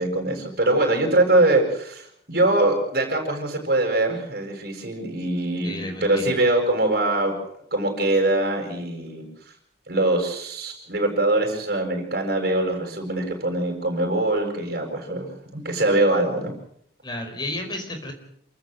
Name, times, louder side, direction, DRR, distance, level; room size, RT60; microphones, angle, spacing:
voice 1, 0.0-7.3 7.7-9.3 9.9-16.5, right 2 dB, 50° right, 1 dB, 7.3 m, -23 dB
voice 2, 5.6-6.4 17.0-18.1, left 1 dB, 25° left, 5 dB, 4.9 m, -32 dB
28.5 x 14.0 x 8.1 m, 0.69 s
head